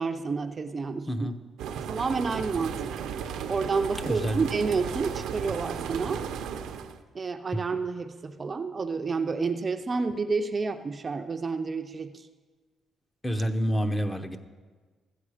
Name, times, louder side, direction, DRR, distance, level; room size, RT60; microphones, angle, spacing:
voice 1, 0.0-1.3 1.8-3.0 3.5-6.2 7.1-12.3, right 4 dB, 35° right, 7 dB, 0.5 m, -30 dB
voice 2, 1.1-1.4 4.0-4.4 13.2-14.4, equal, 15° left, 7 dB, 0.9 m, -28 dB
sound 1, 1.6-7.0, right 8 dB, 85° right, 0.6 m, -35 dB
14.5 x 7.7 x 4.9 m, 1.4 s
cardioid pair, 90°, 0 cm